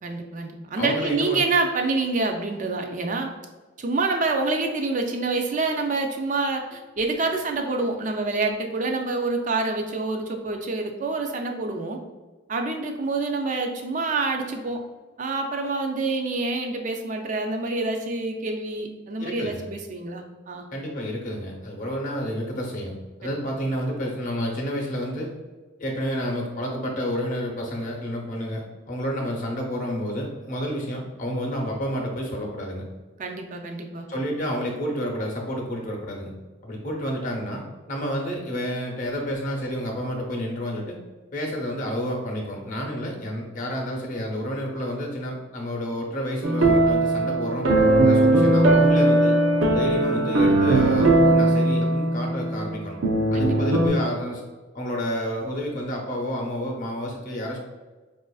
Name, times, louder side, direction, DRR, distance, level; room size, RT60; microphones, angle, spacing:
voice 1, 0.0-3.3 3.8-12.0 12.5-14.8 15.2-20.7 23.2-23.3 33.2-34.1 53.3-53.9, right 3 dB, 40° right, 4 dB, 0.4 m, -27 dB
voice 2, 0.8-1.4 19.1-19.7 20.7-25.3 25.8-32.8 34.1-36.3 36.6-41.0 41.3-47.7 48.0-49.4 49.7-53.0 53.3-54.4 54.7-57.6, equal, 40° left, 0 dB, 0.7 m, -30 dB
sound 1, 46.4-53.9, right 2 dB, 85° right, 0.5 m, -19 dB
4.8 x 2.5 x 2.3 m, 1.3 s
head